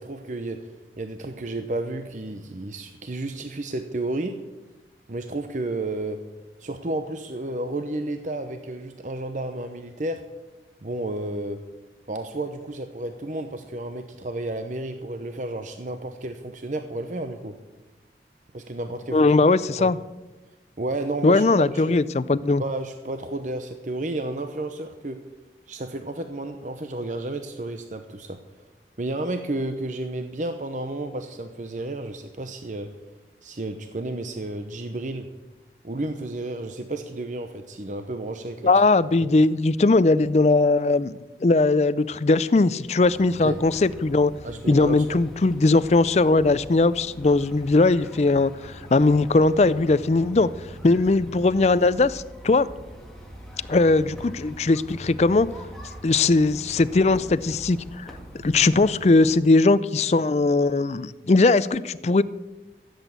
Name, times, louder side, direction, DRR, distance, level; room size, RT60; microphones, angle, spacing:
voice 1, 0.0-4.3 5.1-6.2 6.6-10.2 10.8-11.6 12.1-17.5 18.5-19.3 19.8-19.9 20.8-21.8 22.6-25.2 25.7-28.4 29.0-32.9 33.4-35.3 35.8-38.7 39.2-39.3 43.4-43.6 44.4-45.2, right 2 dB, 45° right, 7 dB, 0.8 m, -32 dB
voice 2, 19.1-20.0 21.2-22.6 38.6-41.1 41.4-44.3 44.7-50.5 50.8-52.7 53.7-55.5 56.0-58.2 58.4-62.2, left 3 dB, 40° left, 17 dB, 0.4 m, -19 dB
sound 1, 43.0-59.3, right 1 dB, 5° left, 1.9 m, -43 dB
15.0 x 8.0 x 8.1 m, 1.1 s
head